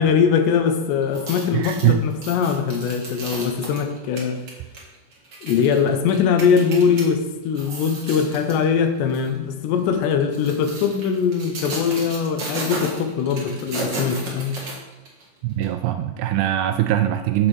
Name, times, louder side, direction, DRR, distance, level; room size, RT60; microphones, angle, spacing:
voice 1, 0.0-4.4 5.4-14.6, left 6 dB, 80° left, 6 dB, 3.0 m, -21 dB
sound 1, 1.0-7.0 7.5-8.6 9.1-9.3 10.1-15.2 15.6-15.7, right 2 dB, 45° right, 1.5 m, -34 dB
voice 2, 1.5-2.0 15.4-17.5, right 13 dB, 85° right, 7 dB, 2.4 m, -21 dB
8.1 x 6.6 x 7.0 m, 1.1 s
omnidirectional pair, 5.0 m